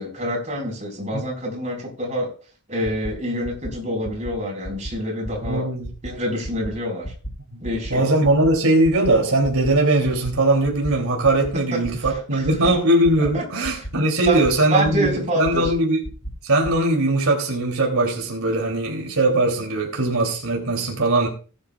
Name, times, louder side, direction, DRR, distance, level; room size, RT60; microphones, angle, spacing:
voice 1, 0.0-2.3 2.7-5.7 6.0-7.1 7.6-8.1 12.0-12.6 13.3-13.6 14.2-14.4 14.7-15.7, equal, 30° right, -1 dB, 4.5 m, -26 dB
sound 1, 2.8-3.1 3.4-3.7 4.0-4.3 4.6-4.9 5.2-5.5 5.8-6.1 6.4-6.7 7.0-7.3 7.6-7.9 8.2-8.5 8.8-9.1 9.4-9.7 10.0-10.3 10.6-10.9 11.2-11.5 11.8-12.1 12.4-12.7 13.0-13.3 13.6-13.9 14.2-14.5 14.8-15.1 15.4-15.7 16.0-16.3 16.6-16.7, right 1 dB, 45° left, 4.5 m, -33 dB
voice 2, 5.4-5.9 7.5-7.6 7.9-16.0 16.4-21.3, right 2 dB, 80° right, 1 dB, 3.0 m, -20 dB
19.0 x 9.7 x 2.4 m, 0.39 s
head